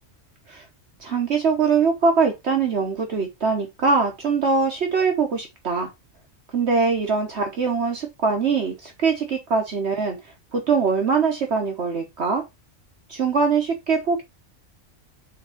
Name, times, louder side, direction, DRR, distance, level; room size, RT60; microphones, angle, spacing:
voice 1, 1.0-5.9 6.5-12.4 13.1-14.2, right 5 dB, 60° right, 1.4 m, -22 dB
6.5 x 3.6 x 4.9 m
omnidirectional pair, 1.3 m